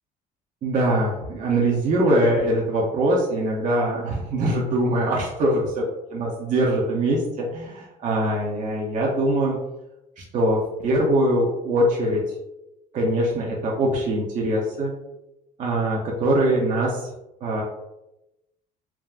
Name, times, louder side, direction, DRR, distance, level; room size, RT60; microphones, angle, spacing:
voice 1, 0.6-5.8 6.1-9.6 10.2-12.2 12.9-14.9 15.6-17.0 17.4-17.6, right 1 dB, 50° right, -3 dB, 0.6 m, -22 dB
3.4 x 2.2 x 2.3 m, 0.93 s
cardioid pair, 110°, 17 cm